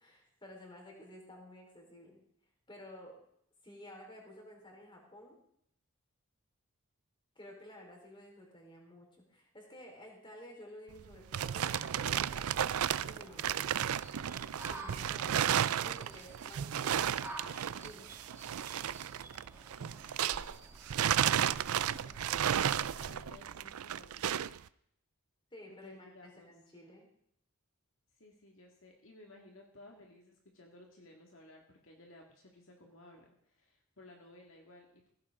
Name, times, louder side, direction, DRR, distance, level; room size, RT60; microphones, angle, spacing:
voice 1, 0.0-2.2 2.7-3.2 3.6-5.4 7.4-13.6 14.6-18.1 25.5-27.1, left 1 dB, 20° left, 0 dB, 4.2 m, -53 dB
sound 1, 10.9-20.6 20.9-24.6, right 9 dB, 85° right, 0.5 m, -33 dB
sound 2, 11.7-23.3, right 2 dB, 10° right, 1.8 m, -52 dB
voice 2, 19.8-20.6 21.8-24.6 25.7-26.5 28.1-35.1, left 1 dB, 60° left, 0 dB, 2.1 m, -57 dB
16.5 x 15.0 x 3.7 m, 0.70 s
head